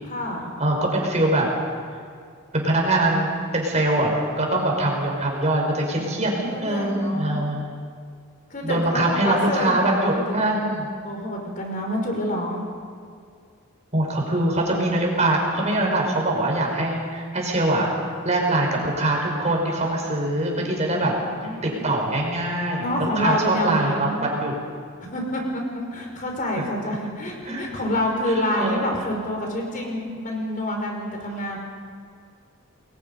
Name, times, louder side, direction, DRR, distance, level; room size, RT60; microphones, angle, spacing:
voice 1, 0.0-0.5 5.9-7.4 8.5-9.8 10.3-10.4 11.0-12.7 21.0-21.8 22.8-24.3 25.0-31.6, left 1 dB, 40° left, 1 dB, 5.1 m, -28 dB
voice 2, 0.6-1.5 2.5-6.3 6.6-7.6 8.6-10.9 13.9-17.9 18.3-21.1 21.6-24.5 27.4-27.6 28.2-28.8, right 1 dB, 35° right, 0 dB, 5.3 m, -23 dB
29.0 x 21.5 x 5.5 m, 2.2 s
head